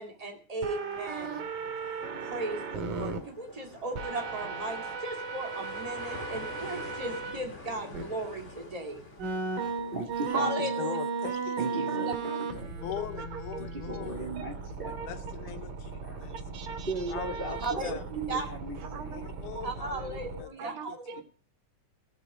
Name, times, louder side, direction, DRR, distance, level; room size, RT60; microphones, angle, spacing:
voice 1, 0.0-1.4 2.2-9.0 10.3-11.0 11.9-12.0 17.6-18.0 18.3-18.5 19.6-21.2, right 2 dB, 15° right, 2 dB, 1.3 m, -36 dB
sound 1, 0.6-3.2 4.0-7.4 7.9-8.0 9.2-20.4, right 4 dB, 90° right, 3.4 m, -36 dB
sound 2, 0.9-10.0, left 2 dB, 25° left, 2.6 m, -47 dB
voice 2, 9.9-10.7 11.6-12.7 13.6-14.9 16.0-16.3 16.9-19.1 20.6-20.7, right 2 dB, 45° right, 2 dB, 0.7 m, -37 dB
voice 3, 10.5-11.9 12.8-14.3 14.9-16.3 17.1-18.0 19.1-21.2, left 11 dB, 75° left, 8 dB, 2.4 m, -42 dB
voice 4, 11.9-12.4 13.0-13.6 14.4-14.5 14.8-15.3 15.9-18.0 18.8-19.7 20.6-21.2, right 6 dB, 65° right, 8 dB, 1.4 m, -43 dB
17.0 x 7.4 x 5.1 m, 0.40 s
omnidirectional pair, 3.7 m